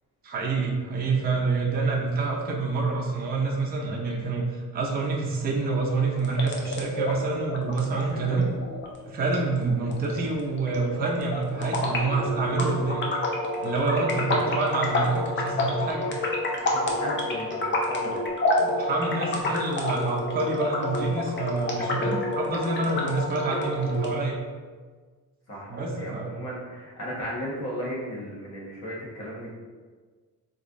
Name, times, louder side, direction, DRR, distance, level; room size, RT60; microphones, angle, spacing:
voice 1, 0.2-8.5 9.0-13.0 13.6-16.1 18.6-24.4 25.7-26.4, right 3 dB, 25° right, -3 dB, 0.5 m, -27 dB
sound 1, 6.1-24.1, left 2 dB, 30° left, 0.5 m, -29 dB
voice 2, 14.0-14.5 16.0-16.2 16.6-18.2 25.5-29.6, equal, 45° left, -5 dB, 1.1 m, -36 dB
3.6 x 3.1 x 2.5 m, 1.5 s
cardioid pair, 135°, 36 cm